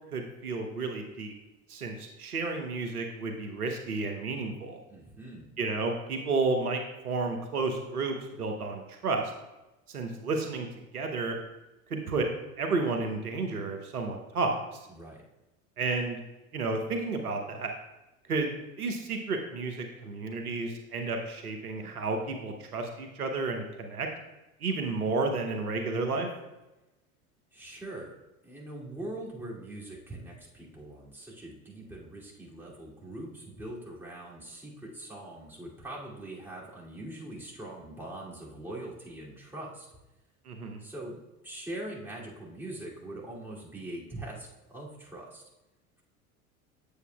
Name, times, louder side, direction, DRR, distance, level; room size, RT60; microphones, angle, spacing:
voice 1, 0.1-1.3 1.7-4.8 5.6-9.2 9.9-10.7 10.9-11.3 11.9-12.3 12.6-14.6 15.8-16.2 16.5-17.7 18.3-18.5 18.8-24.1 24.6-26.3 40.5-40.8, right 3 dB, 90° right, 4 dB, 0.9 m, -31 dB
voice 2, 4.9-5.5 14.9-15.2 27.5-28.2 28.4-39.9 40.8-45.4, right 1 dB, 5° right, -6 dB, 2.6 m, -42 dB
8.2 x 7.9 x 2.3 m, 1.0 s
hypercardioid pair, 75°, 44 cm